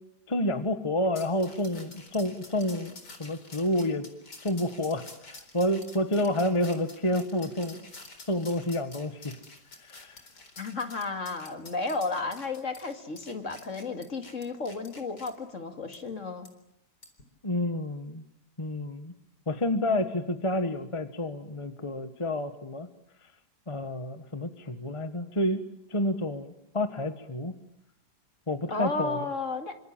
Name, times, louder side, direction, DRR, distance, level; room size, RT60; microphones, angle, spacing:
voice 1, 0.3-4.1 4.4-7.8 8.3-9.4 9.8-10.2 17.4-18.2 18.6-19.1 19.5-22.9 23.7-25.6 25.9-27.5 28.5-29.2, left 1 dB, 20° left, 9 dB, 1.5 m, -29 dB
sound 1, 1.1-15.3 15.9-16.0 16.4-16.5 17.0-17.2, left 3 dB, 75° left, 4.7 m, -49 dB
voice 2, 10.6-16.5 28.7-29.8, left 3 dB, 45° left, 7 dB, 2.7 m, -33 dB
27.5 x 26.0 x 7.5 m, 0.78 s
omnidirectional pair, 1.8 m